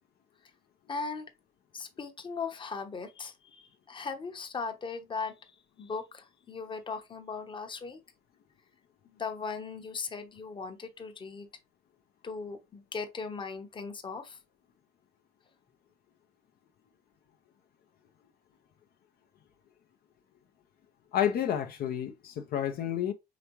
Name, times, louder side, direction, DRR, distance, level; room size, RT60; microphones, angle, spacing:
voice 1, 0.9-1.3 1.7-5.5 5.8-8.0 9.0-11.5 12.2-14.4, left 4 dB, 30° left, 0.9 m, -38 dB
voice 2, 21.1-23.1, left 10 dB, 60° left, 0.7 m, -30 dB
5.0 x 3.5 x 3.0 m
cardioid pair, 110°, 17 cm